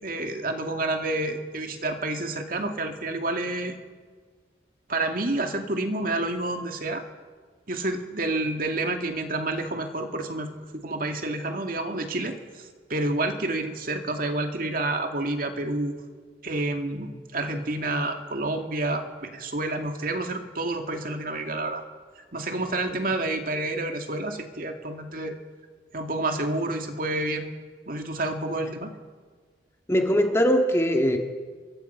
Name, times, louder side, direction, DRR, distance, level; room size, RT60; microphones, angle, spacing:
voice 1, 0.0-3.8 4.9-7.0 7.7-10.5 10.8-12.4 12.9-16.0 16.4-21.8 22.3-25.4 25.9-27.5 27.9-28.9, right 2 dB, 50° right, 5 dB, 2.4 m, -29 dB
voice 2, 29.9-31.2, equal, 15° left, 3 dB, 2.0 m, -21 dB
27.5 x 23.0 x 5.8 m, 1.5 s
head